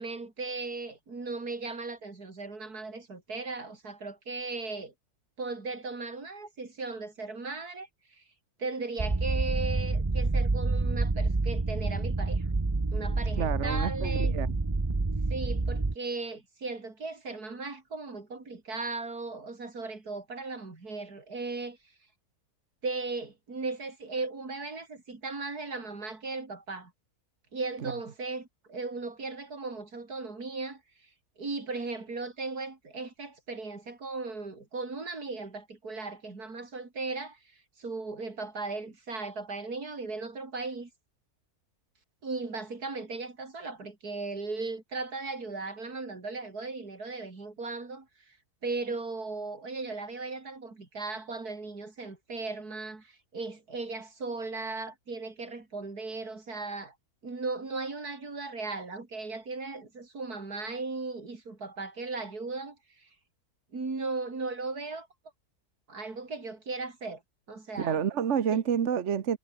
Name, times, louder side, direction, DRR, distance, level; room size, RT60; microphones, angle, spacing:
voice 1, 0.0-4.9 5.4-8.2 8.6-12.5 12.9-14.3 15.3-21.8 22.8-26.9 27.5-30.8 31.4-37.4 37.8-40.9 42.2-48.4 48.6-57.0 57.2-63.1 63.7-65.1 65.9-67.2 67.5-68.0 68.5-68.6, right 3 dB, 85° right, 4.4 m, -37 dB
sound 1, 9.0-15.9, right 3 dB, 20° right, 0.9 m, -28 dB
voice 2, 13.4-14.6 27.8-27.9 67.8-69.4, right 8 dB, 55° right, 1.3 m, -29 dB
omnidirectional pair, 1.6 m